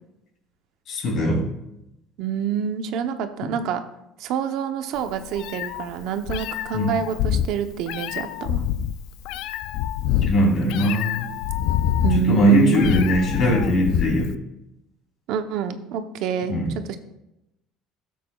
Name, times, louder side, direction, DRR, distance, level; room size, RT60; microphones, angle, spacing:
voice 1, 0.9-1.4 6.7-6.9 10.3-11.3 12.1-14.3 16.5-16.6, equal, 45° left, 0 dB, 3.0 m, -20 dB
voice 2, 2.2-3.8 4.2-8.6 12.0-12.9 15.3-17.0, right 8 dB, 65° right, 8 dB, 0.8 m, -27 dB
Meow, 5.0-14.3, left 10 dB, 70° left, 0.4 m, -26 dB
13.5 x 7.4 x 2.3 m, 0.89 s
cardioid pair, 150°, 0 cm